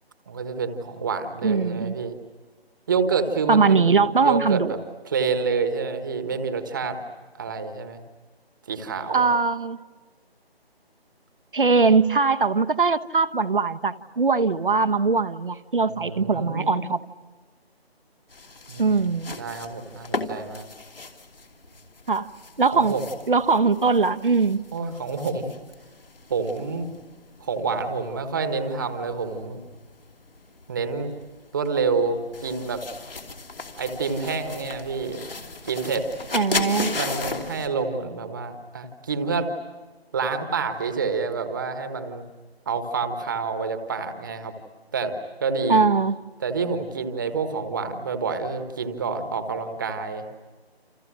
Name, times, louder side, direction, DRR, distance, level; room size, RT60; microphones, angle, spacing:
voice 1, 0.3-2.2 2.9-4.8 5.0-7.0 7.4-8.0 8.7-9.3 15.9-16.8 18.7-19.0 19.4-20.7 22.7-23.0 24.7-25.5 26.3-26.9 27.4-29.6 30.7-31.1 31.5-32.8 33.8-35.2 35.6-36.1 36.9-39.5 40.1-42.2 42.7-44.5 44.9-45.8 46.4-50.5, right 5 dB, 20° right, 8 dB, 1.4 m, -28 dB
voice 2, 1.4-2.0 3.5-4.7 9.1-9.8 11.5-17.0 18.8-19.3 22.1-22.3 22.6-23.0 23.3-24.6 36.3-37.0 45.7-46.2, right 4 dB, 55° right, 12 dB, 1.1 m, -21 dB
sound 1, 18.3-37.7, left 3 dB, 60° left, 2.9 m, -37 dB
29.0 x 28.0 x 6.3 m, 1.3 s
figure-of-eight pair, 160°, 31 cm